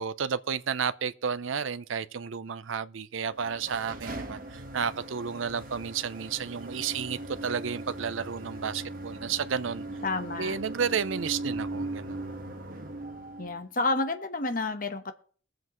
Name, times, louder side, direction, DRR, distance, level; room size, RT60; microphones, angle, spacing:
voice 1, 0.0-9.8 10.4-12.2, right 6 dB, 80° right, 0.6 m, -32 dB
sound 1, 3.3-13.6, right 2 dB, 45° right, 1.4 m, -39 dB
voice 2, 10.0-10.5 13.4-15.1, left 3 dB, 45° left, 1.1 m, -30 dB
22.5 x 7.7 x 3.1 m
head